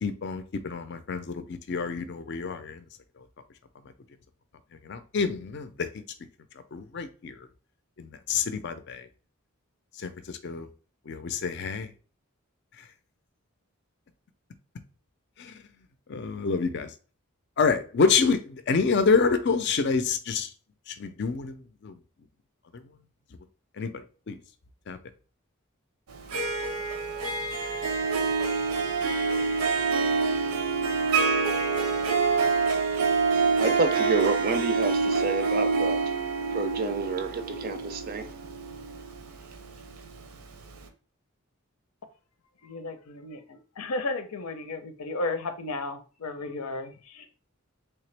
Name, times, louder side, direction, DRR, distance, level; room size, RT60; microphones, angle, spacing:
voice 1, 0.0-2.8 4.9-5.7 6.7-7.3 8.0-9.0 10.0-10.1 10.4-10.7 11.1-11.9 16.1-16.9 17.6-20.5 21.0-21.6 21.8-21.9 23.8-23.9 24.3-24.4 24.9-25.0, left 5 dB, 50° left, 0.4 m, -27 dB
Harp, 26.1-40.1, right 4 dB, 85° right, 0.7 m, -26 dB
voice 2, 33.6-36.0 36.5-38.3, right 3 dB, 40° right, 0.4 m, -29 dB
voice 3, 42.6-43.4 43.8-46.9 47.2-47.3, left 2 dB, 90° left, 0.6 m, -33 dB
3.3 x 2.9 x 3.2 m
head